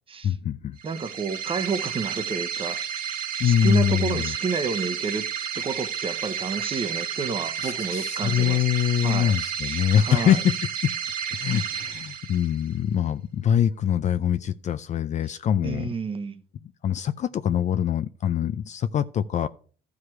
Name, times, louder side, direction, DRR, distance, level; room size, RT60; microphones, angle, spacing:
voice 1, 0.2-0.8 3.4-4.4 7.6-10.9 11.3-15.9 16.8-19.5, left 9 dB, 45° left, 0.5 m, -24 dB
voice 2, 0.8-2.8 3.4-8.6 9.0-9.4 9.6-10.4 15.6-16.4, right 5 dB, 30° right, 1.0 m, -30 dB
sound 1, 0.8-12.7, right 8 dB, 60° right, 1.2 m, -31 dB
12.5 x 4.9 x 5.9 m
cardioid pair, 110°, 17 cm